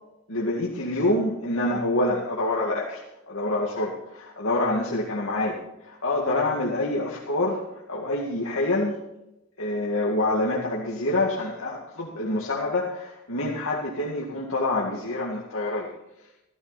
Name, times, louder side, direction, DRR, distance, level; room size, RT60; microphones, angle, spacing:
voice 1, 0.3-3.0 3.3-5.6 6.0-7.6 7.9-8.9 9.6-15.9, left 2 dB, 80° left, -4 dB, 2.3 m, -26 dB
15.0 x 14.5 x 4.2 m, 0.87 s
head